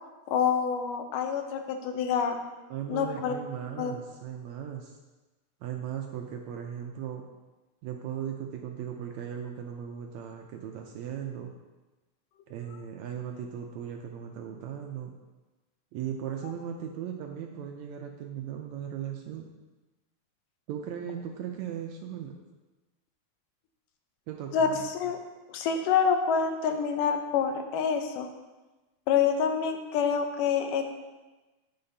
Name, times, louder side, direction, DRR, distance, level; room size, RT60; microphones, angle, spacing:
voice 1, 0.3-2.4 2.9-3.3 3.8-3.9 24.5-25.2 25.5-28.3 29.1-30.9, left 7 dB, 90° left, 5 dB, 2.4 m, -27 dB
voice 2, 2.7-4.9 5.6-7.2 7.8-11.5 12.5-15.1 15.9-19.5 20.7-22.4 24.3-24.9, right 9 dB, 80° right, 3 dB, 1.7 m, -37 dB
10.5 x 7.7 x 2.7 m, 1.2 s
omnidirectional pair, 3.6 m